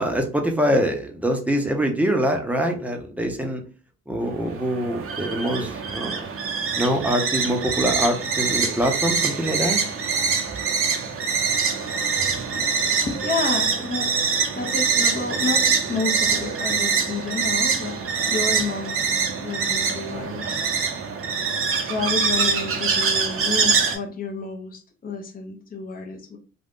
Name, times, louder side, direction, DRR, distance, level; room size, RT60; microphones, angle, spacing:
voice 1, 0.0-3.6 4.1-6.3 6.8-9.8, equal, 5° right, 3 dB, 0.7 m, -24 dB
sound 1, 4.2-24.0, right 5 dB, 45° right, 0.7 m, -24 dB
voice 2, 13.0-18.0 18.3-19.0 19.4-20.6 21.8-26.4, left 4 dB, 30° left, 1 dB, 0.7 m, -30 dB
2.5 x 2.3 x 3.6 m, 0.37 s
cardioid pair, 90°, 30 cm